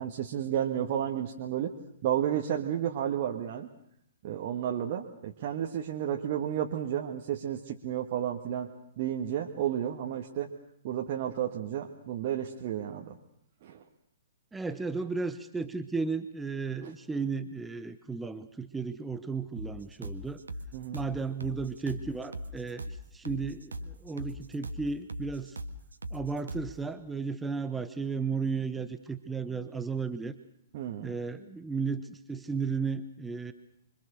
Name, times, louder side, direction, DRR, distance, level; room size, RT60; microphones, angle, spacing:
voice 1, 0.0-1.7 2.0-3.7 4.2-8.7 9.0-10.5 10.8-13.2 13.6-13.8 16.8-16.9 20.7-21.0 30.7-31.1, right 10 dB, 40° right, 1 dB, 1.9 m, -32 dB
voice 2, 14.5-20.4 20.9-25.6 26.1-30.3 31.0-33.5, right 4 dB, 10° right, 10 dB, 1.1 m, -34 dB
sound 1, 19.6-26.8, equal, 75° right, 1.7 m, -40 dB
26.0 x 24.5 x 6.6 m, 0.73 s
figure-of-eight pair, 115°, 0 cm